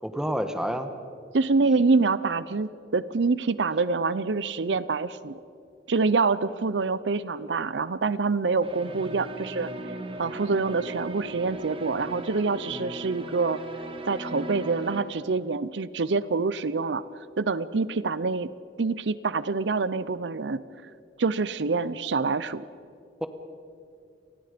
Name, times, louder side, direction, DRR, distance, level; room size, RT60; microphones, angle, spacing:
voice 1, 0.0-0.9 12.7-13.0 23.2-23.3, equal, 5° right, 8 dB, 1.2 m, -29 dB
voice 2, 1.3-5.4 5.9-9.7 10.2-13.6 14.1-17.0 17.4-18.5 18.8-20.6 21.2-22.6, right 4 dB, 85° right, 16 dB, 0.6 m, -26 dB
sound 1, 8.6-15.0, right 1 dB, 30° right, 1.8 m, -38 dB
28.0 x 20.0 x 5.2 m, 2.5 s
head